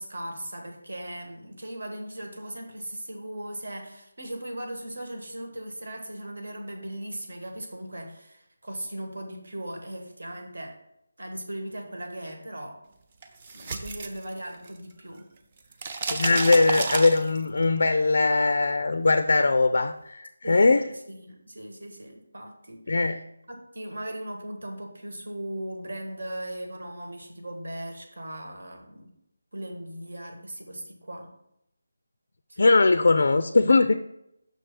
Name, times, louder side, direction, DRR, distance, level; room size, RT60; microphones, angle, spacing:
voice 1, 0.0-10.8 11.2-12.8 13.5-15.3 16.6-16.8 20.4-20.8 21.2-23.2 23.5-29.1 29.5-31.3 32.5-32.6, right 1 dB, 75° right, 3 dB, 1.4 m, -38 dB
sound 1, 13.2-14.9 15.2-17.6, right 4 dB, 30° right, 0.5 m, -31 dB
voice 2, 16.1-20.9 22.9-23.2 32.6-33.9, left 3 dB, 60° left, 10 dB, 0.3 m, -21 dB
6.2 x 3.3 x 5.9 m, 0.79 s
figure-of-eight pair, 170°, 0 cm